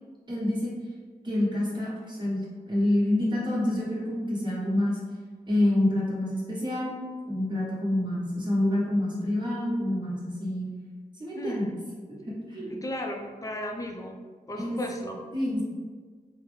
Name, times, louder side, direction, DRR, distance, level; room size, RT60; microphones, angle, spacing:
voice 1, 0.3-0.7 1.2-5.0 5.5-6.9 7.3-10.7 11.2-11.7 12.1-12.8 14.6-14.8 15.3-15.6, left 1 dB, 30° right, -6 dB, 1.2 m, -27 dB
voice 2, 11.4-11.8 12.7-14.2 14.5-15.2, left 1 dB, 25° left, 1 dB, 0.5 m, -35 dB
3.6 x 2.1 x 3.1 m, 1.5 s
wide cardioid pair, 80°, 15 cm